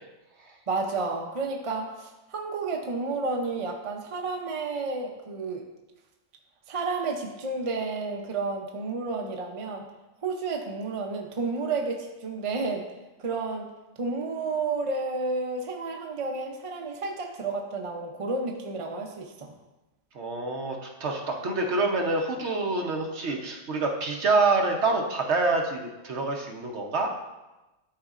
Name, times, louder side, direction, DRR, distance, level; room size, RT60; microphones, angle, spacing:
voice 1, 0.7-5.6 6.7-9.9 10.2-12.9 13.2-13.7 14.0-19.5, right 3 dB, 40° right, 1 dB, 0.4 m, -31 dB
voice 2, 20.1-27.1, right 3 dB, 60° right, 1 dB, 1.1 m, -26 dB
11.5 x 4.0 x 2.5 m, 1.0 s
omnidirectional pair, 1.4 m